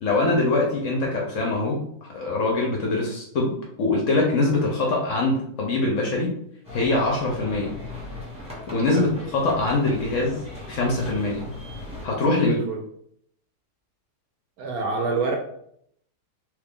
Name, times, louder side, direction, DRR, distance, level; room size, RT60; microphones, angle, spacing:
voice 1, 0.0-3.5 3.8-6.3 6.7-7.7 8.7-10.4 10.7-11.5 12.0-12.6, left 2 dB, 60° left, -1 dB, 0.9 m, -23 dB
sound 1, 6.6-12.1, left 2 dB, 5° right, 1.0 m, -38 dB
voice 2, 12.4-12.8 14.6-15.4, right 4 dB, 70° right, 3 dB, 1.0 m, -27 dB
3.2 x 2.4 x 3.5 m, 0.69 s
omnidirectional pair, 1.8 m